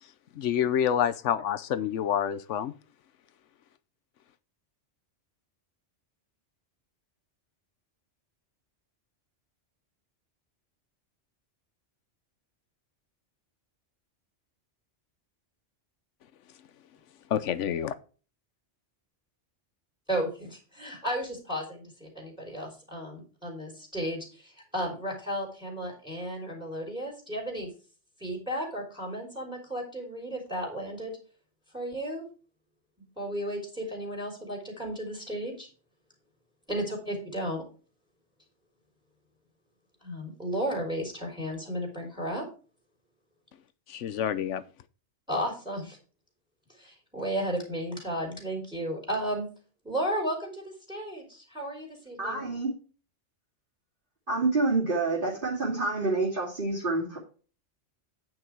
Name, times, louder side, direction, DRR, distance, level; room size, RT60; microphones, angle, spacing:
voice 1, 0.4-2.7 17.3-17.9 43.9-44.6, left 9 dB, 85° left, 15 dB, 1.0 m, -27 dB
voice 2, 20.1-27.7 28.2-31.2 31.7-32.3 33.2-35.7 36.7-37.6 40.0-42.5 45.3-46.0 46.8-49.5 49.8-52.4, equal, 5° right, 1 dB, 3.5 m, -34 dB
voice 3, 52.2-52.7 54.3-57.2, right 3 dB, 45° right, -7 dB, 2.7 m, -27 dB
9.2 x 6.0 x 4.5 m, 0.37 s
omnidirectional pair, 1.2 m